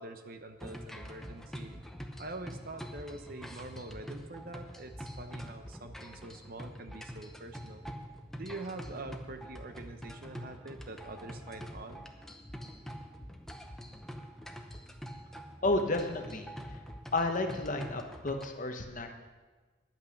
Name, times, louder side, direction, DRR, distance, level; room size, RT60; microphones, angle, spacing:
voice 1, 0.0-1.8 2.2-7.9 8.4-12.1, right 2 dB, 50° right, 7 dB, 0.8 m, -45 dB
sound 1, 0.6-18.5, equal, ahead, 0.8 m, -45 dB
voice 2, 15.6-16.8 17.1-19.2, left 2 dB, 40° left, 5 dB, 1.1 m, -32 dB
10.5 x 8.7 x 6.4 m, 1.3 s
head